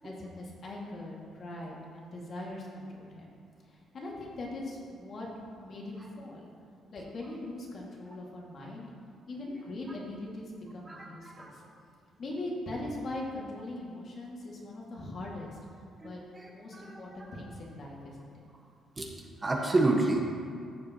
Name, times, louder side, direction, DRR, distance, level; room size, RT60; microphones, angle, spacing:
voice 1, 0.0-3.3 3.7-5.3 5.6-6.5 6.9-8.9 9.3-11.6 12.2-15.5 16.0-16.2 16.5-18.3, left 2 dB, 50° left, -3 dB, 2.2 m, -41 dB
voice 2, 16.0-17.0 19.0-19.1 19.4-20.2, right 2 dB, 25° right, 0 dB, 1.3 m, -29 dB
14.0 x 7.0 x 3.0 m, 2.3 s
cardioid pair, 90°, 0 cm